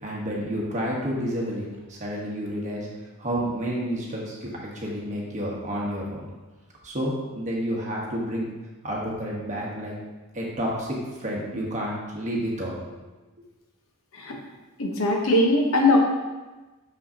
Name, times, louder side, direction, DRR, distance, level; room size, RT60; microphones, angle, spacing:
voice 1, 0.0-2.9 3.2-6.2 6.8-8.5 8.8-9.9 10.3-12.7, equal, 35° right, -3 dB, 1.2 m, -30 dB
voice 2, 14.8-16.0, left 2 dB, 65° left, 0 dB, 0.9 m, -20 dB
6.2 x 5.6 x 2.8 m, 1.2 s
head